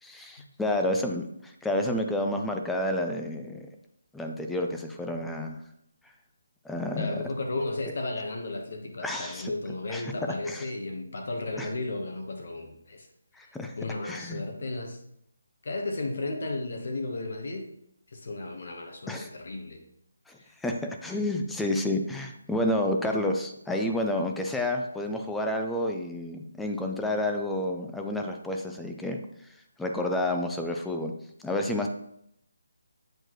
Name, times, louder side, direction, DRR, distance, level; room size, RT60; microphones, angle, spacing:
voice 1, 0.0-3.7 4.1-5.6 6.6-7.2 9.0-9.5 9.9-10.1 10.5-10.6 11.6-11.7 13.4-13.7 14.0-14.4 19.1-19.3 20.3-29.2 29.8-31.1 31.4-31.9, left 1 dB, 5° left, 3 dB, 0.4 m, -30 dB
voice 2, 7.0-13.1 13.4-15.0 15.6-17.7 18.1-19.8 20.4-20.5, left 2 dB, 60° left, 3 dB, 1.2 m, -34 dB
8.0 x 4.4 x 3.1 m, 0.74 s
hypercardioid pair, 165°, 0 cm